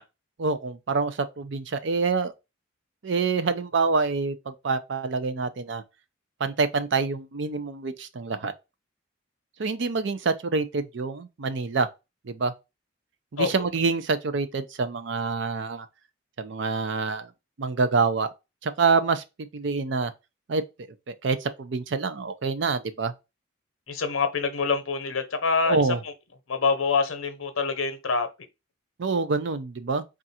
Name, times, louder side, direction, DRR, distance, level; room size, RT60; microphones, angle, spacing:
voice 1, 0.4-2.3 3.0-5.8 6.4-8.5 9.6-11.9 12.3-12.5 13.3-15.9 16.4-17.3 17.6-18.3 18.6-19.2 19.5-20.1 20.5-20.6 21.1-23.1 25.7-26.0 29.0-30.0, right 4 dB, 60° right, 0.5 m, -26 dB
voice 2, 23.9-26.1 26.5-28.3, left 4 dB, 90° left, 0.8 m, -26 dB
3.6 x 2.5 x 4.2 m
head